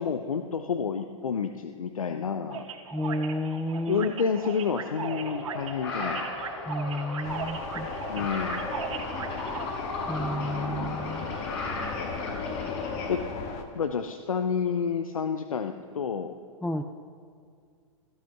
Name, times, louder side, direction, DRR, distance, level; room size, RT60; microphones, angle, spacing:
voice 1, 0.0-2.7 3.9-6.2 8.1-8.6 12.8-13.2 13.7-16.3, left 6 dB, 90° left, 8 dB, 0.8 m, -29 dB
sound 1, 2.5-9.7, right 7 dB, 75° right, 2.0 m, -38 dB
voice 2, 2.9-4.1 6.7-7.9 10.1-11.3 16.6-16.8, left 1 dB, 5° left, 7 dB, 0.6 m, -31 dB
sound 2, 5.1-13.1, left 3 dB, 55° left, 5.5 m, -36 dB
sound 3, 7.2-13.6, left 4 dB, 40° left, 2.0 m, -36 dB
17.5 x 14.0 x 5.9 m, 2.2 s
hypercardioid pair, 120°, 17 cm